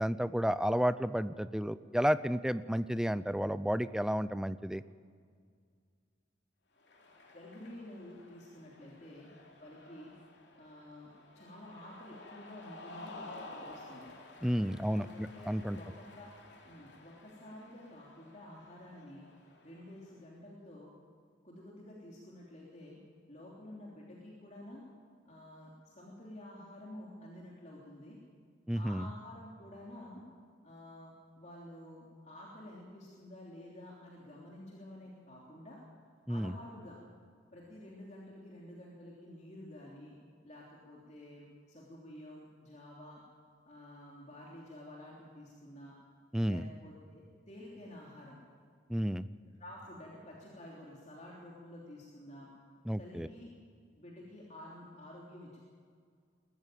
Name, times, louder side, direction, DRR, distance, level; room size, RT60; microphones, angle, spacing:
voice 1, 0.0-4.8 14.4-15.8 28.7-29.1 36.3-36.5 46.3-46.7 48.9-49.3 52.9-53.3, equal, 5° right, 15 dB, 0.4 m, -32 dB
Cheering, 6.8-20.2, left 2 dB, 60° left, 3.1 m, -53 dB
voice 2, 7.3-9.3 9.6-10.1 10.5-14.1 14.5-16.3 16.6-19.2 19.6-20.9 21.4-23.0 23.3-24.8 25.2-28.2 28.8-30.2 30.6-35.8 36.3-37.0 37.5-40.1 40.4-43.2 43.7-45.9 46.4-48.4 49.6-52.5 53.0-53.5 53.9-55.6, left 1 dB, 35° left, -4 dB, 3.2 m, -50 dB
22.0 x 14.5 x 9.1 m, 2.1 s
head